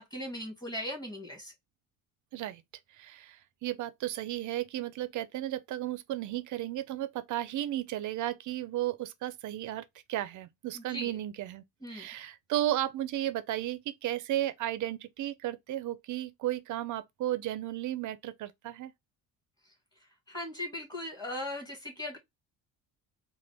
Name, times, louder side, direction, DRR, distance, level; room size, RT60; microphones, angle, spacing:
voice 1, 0.0-1.5 10.7-11.1 11.8-12.1 20.3-22.2, left 1 dB, 10° left, 2.1 m, -38 dB
voice 2, 2.9-11.6 11.9-18.9, right 13 dB, 55° right, 0.6 m, -34 dB
3.8 x 2.5 x 3.4 m
cardioid pair, 140°, 35 cm